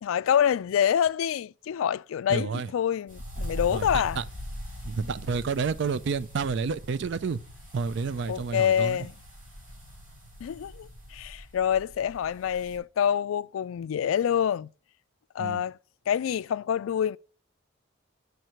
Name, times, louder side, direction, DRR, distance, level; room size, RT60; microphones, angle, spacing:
voice 1, 0.0-4.2 8.3-9.1 10.4-14.7 15.4-15.8 16.1-17.2, left 9 dB, 80° left, 0.3 m, -26 dB
voice 2, 2.3-2.7 3.7-3.9 4.2-4.3 4.9-7.4 7.7-9.1 15.4-15.6, right 5 dB, 60° right, 0.4 m, -30 dB
sound 1, 3.1-12.8, equal, 40° right, 4.1 m, -41 dB
6.5 x 4.6 x 6.3 m
head